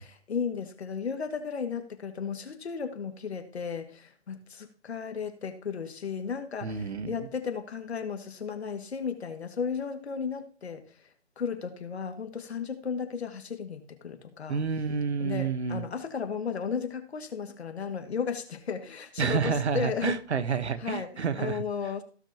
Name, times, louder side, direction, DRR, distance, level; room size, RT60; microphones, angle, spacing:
voice 1, 0.0-11.0 11.4-14.6 15.2-20.2 20.8-21.1 21.4-22.0, left 6 dB, 70° left, 6 dB, 2.1 m, -34 dB
voice 2, 6.6-7.1 14.5-15.8 19.2-21.6, right 6 dB, 80° right, 12 dB, 1.3 m, -29 dB
17.0 x 6.3 x 3.0 m, 0.40 s
hypercardioid pair, 165°, 33 cm